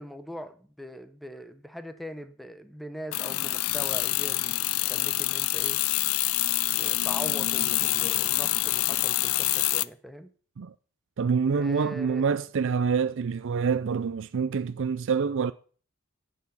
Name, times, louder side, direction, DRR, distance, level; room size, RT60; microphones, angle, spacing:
voice 1, 0.0-5.8 6.8-10.3 11.5-12.3, equal, ahead, 0.9 m, -41 dB
sound 1, 3.1-9.9, left 17 dB, 70° left, 0.4 m, -26 dB
voice 2, 11.2-15.5, right 5 dB, 60° right, 0.4 m, -26 dB
11.0 x 8.3 x 5.5 m
head